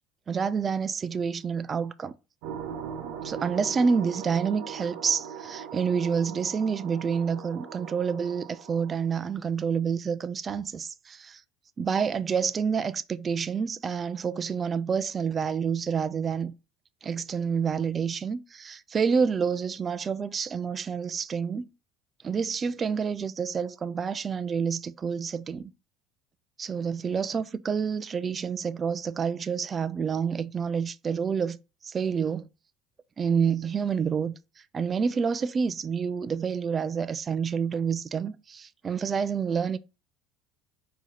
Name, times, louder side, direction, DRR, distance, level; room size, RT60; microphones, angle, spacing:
voice 1, 0.3-2.1 3.2-11.4 11.8-16.5 17.0-21.7 22.2-25.7 26.6-31.6 31.8-32.5 33.2-34.3 34.7-39.8, right 6 dB, 25° right, 0.3 m, -28 dB
sound 1, 2.4-9.1, right 7 dB, 80° right, 0.9 m, -40 dB
4.6 x 2.8 x 4.1 m
supercardioid pair, 125°, 0 cm